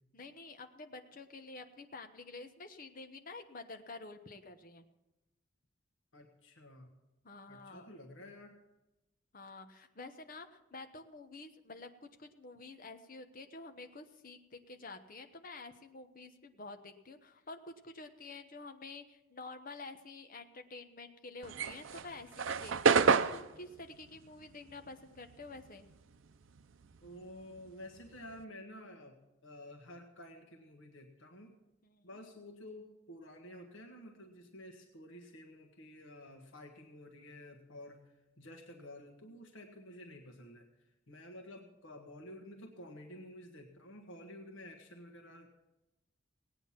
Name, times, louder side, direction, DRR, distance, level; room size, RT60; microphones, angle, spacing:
voice 1, 0.1-4.8 7.2-8.0 9.3-25.9 31.8-32.1, left 3 dB, 45° left, 7 dB, 1.0 m, -49 dB
voice 2, 6.1-6.9 7.5-8.6 27.0-31.5 32.0-45.5, left 1 dB, 80° left, 3 dB, 1.5 m, -51 dB
sound 1, 21.4-26.1 26.4-28.4, right 5 dB, 85° right, 0.6 m, -30 dB
18.0 x 9.2 x 5.8 m, 0.99 s
head